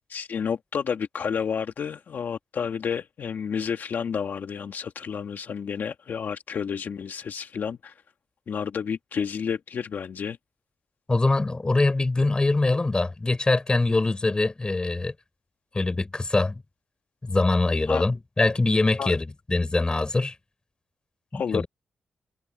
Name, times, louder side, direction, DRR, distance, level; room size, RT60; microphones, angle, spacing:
voice 1, 0.1-7.9 8.5-10.4 17.9-18.0 19.0-19.1 21.3-21.6, left 7 dB, 65° left, 1.5 m, -30 dB
voice 2, 11.1-15.1 15.7-16.6 17.2-20.4 21.3-21.7, left 2 dB, 25° left, 4.5 m, -23 dB
cardioid pair, 75°, 3 cm